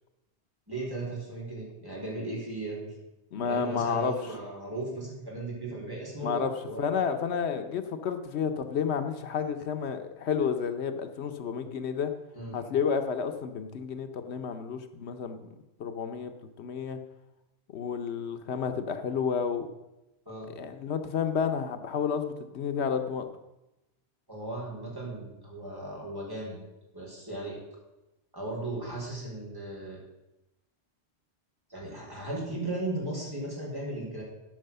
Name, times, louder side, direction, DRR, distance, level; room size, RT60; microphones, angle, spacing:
voice 1, 0.7-2.9 3.4-6.9 12.3-12.5 20.3-20.5 24.3-26.7 26.9-27.6 28.3-30.0 31.7-34.2, right 2 dB, 20° right, -5 dB, 3.9 m, -36 dB
voice 2, 3.3-4.1 6.2-6.5 6.8-12.1 12.5-15.5 15.8-16.3 16.6-17.0 17.7-19.7 20.5-23.3, left 6 dB, 85° left, 8 dB, 1.1 m, -31 dB
12.5 x 5.5 x 6.7 m, 0.97 s
omnidirectional pair, 1.1 m